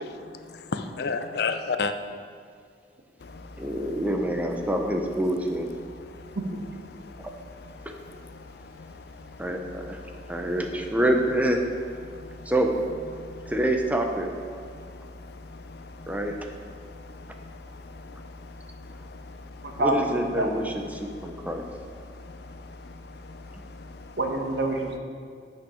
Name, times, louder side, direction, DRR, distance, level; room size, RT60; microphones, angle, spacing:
voice 1, 0.0-1.9 3.2-4.0 5.8-9.5 9.7-10.4 12.0-12.5 13.1-13.5 14.6-19.8 20.9-21.5 22.0-24.2, left 4 dB, 60° left, 0.5 m, -38 dB
voice 2, 3.6-5.7 7.2-7.3 9.4-10.0 10.3-11.6 12.5-12.7 13.5-14.3 16.1-16.4 19.8-21.6, right 1 dB, 10° right, 0.6 m, -26 dB
voice 3, 19.6-20.5 24.2-25.0, right 1 dB, 70° right, 1.1 m, -27 dB
8.6 x 5.7 x 5.0 m
head